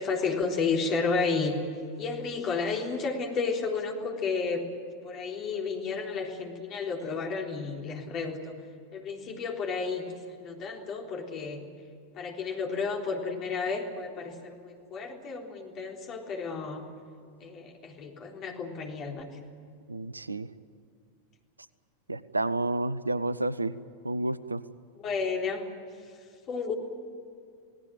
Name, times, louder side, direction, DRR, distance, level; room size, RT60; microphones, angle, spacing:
voice 1, 0.0-1.6 2.0-4.6 5.0-8.5 8.9-11.6 12.1-16.8 17.4-19.3 24.9-25.6 26.5-26.7, left 4 dB, 35° left, 1 dB, 3.7 m, -32 dB
voice 2, 19.9-20.5 22.1-23.7 24.0-24.6, right 2 dB, 80° right, 18 dB, 0.7 m, -30 dB
28.0 x 18.0 x 7.7 m, 2.4 s
figure-of-eight pair, 90°, 0 cm